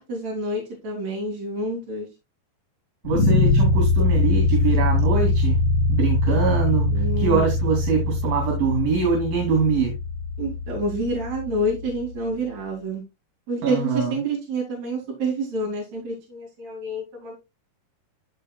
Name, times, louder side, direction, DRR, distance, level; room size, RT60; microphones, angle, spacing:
voice 1, 0.0-2.1 6.9-7.4 10.4-13.0 13.5-17.3, right 1 dB, 55° right, 4.5 m, -28 dB
sound 1, 3.0-12.1, left 2 dB, 85° left, 1.1 m, -22 dB
voice 2, 3.0-5.6 5.9-9.9 13.6-14.1, right 5 dB, 80° right, 4.6 m, -23 dB
14.5 x 5.0 x 2.3 m
omnidirectional pair, 3.9 m